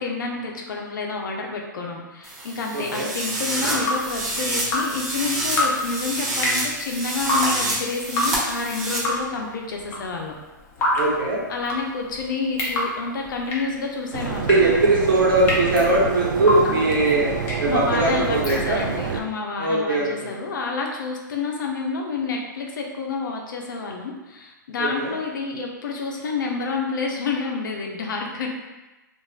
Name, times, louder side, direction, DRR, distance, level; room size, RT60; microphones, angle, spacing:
voice 1, 0.0-10.4 11.5-14.6 17.7-28.5, left 4 dB, 70° left, 1 dB, 0.6 m, -29 dB
sound 1, 2.2-9.0, right 1 dB, 30° right, 0.8 m, -28 dB
voice 2, 2.7-3.1 11.0-11.4 14.5-17.3 17.6-18.8 19.6-20.3 24.8-25.1, right 2 dB, 80° right, -4 dB, 1.0 m, -20 dB
Drip, 3.6-19.1, left 1 dB, 20° left, 0.5 m, -29 dB
sound 2, 14.1-19.2, right 6 dB, 65° right, 0.4 m, -28 dB
3.1 x 2.5 x 2.3 m, 1.1 s
hypercardioid pair, 135°, 11 cm